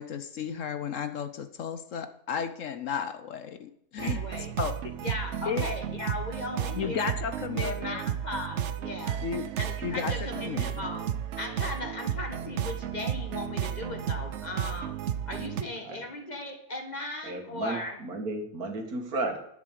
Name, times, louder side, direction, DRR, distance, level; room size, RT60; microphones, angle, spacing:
voice 1, 0.0-4.3 4.6-4.7 5.5-5.6 6.7-8.0 9.2-9.4 9.8-10.8, left 7 dB, 65° left, 10 dB, 1.0 m, -34 dB
voice 2, 4.0-4.5 5.0-7.2 7.5-9.2 9.6-11.0 11.4-15.0 15.3-18.0, left 2 dB, 30° left, 3 dB, 1.6 m, -37 dB
sound 1, 4.0-15.6, right 9 dB, 60° right, 0.8 m, -33 dB
voice 3, 17.2-19.4, right 2 dB, 75° right, 3 dB, 2.2 m, -33 dB
11.0 x 7.5 x 6.5 m, 0.75 s
omnidirectional pair, 1.6 m